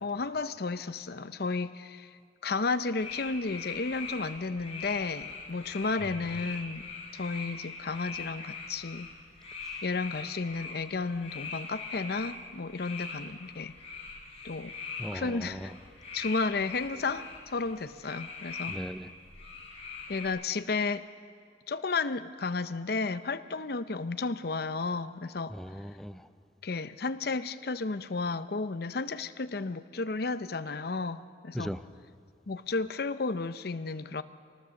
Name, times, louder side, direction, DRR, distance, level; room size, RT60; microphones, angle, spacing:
voice 1, 0.0-2.1 2.4-6.8 7.1-9.1 9.8-13.7 14.4-14.7 15.1-15.7 16.1-18.8 20.1-21.0 21.7-25.5 26.6-31.7 32.5-34.2, left 4 dB, 60° left, 12 dB, 0.7 m, -33 dB
sound 1, 3.0-20.3, left 4 dB, 35° left, 5.8 m, -42 dB
voice 2, 15.0-15.8 18.7-19.1 25.5-26.3 31.5-31.8, equal, ahead, 11 dB, 0.5 m, -38 dB
25.5 x 19.5 x 7.1 m, 2.2 s
head